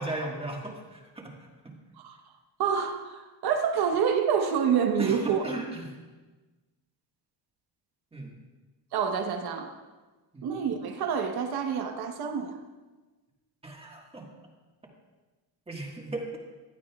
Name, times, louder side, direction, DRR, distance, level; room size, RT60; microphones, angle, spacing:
voice 1, 0.0-1.3 1.6-1.7 5.0-5.9 8.1-8.3 10.3-10.4 13.6-14.3 15.7-16.3, right 2 dB, 10° right, -1 dB, 1.6 m, -36 dB
voice 2, 2.6-5.4 8.9-9.8 10.4-12.6, right 7 dB, 55° right, 5 dB, 1.2 m, -27 dB
15.5 x 11.0 x 2.4 m, 1.2 s
cardioid pair, 140°, 46 cm